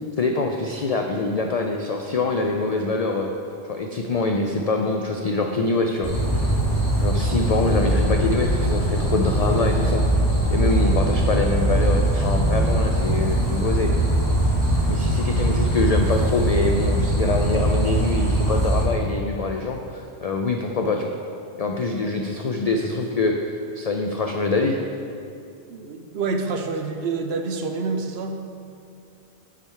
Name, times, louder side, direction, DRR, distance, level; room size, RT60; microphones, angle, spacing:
voice 1, 0.2-3.3 3.7-6.1 6.4-6.5 7.0-10.0 10.5-13.9 14.9-21.1 21.6-23.3 23.7-24.8, left 3 dB, 65° left, 2 dB, 0.3 m, -24 dB
sound 1, 6.0-18.8, right 1 dB, 15° right, 2.0 m, -21 dB
voice 2, 25.7-28.4, right 4 dB, 70° right, 5 dB, 0.8 m, -27 dB
8.6 x 4.9 x 4.5 m, 2.5 s
omnidirectional pair, 1.2 m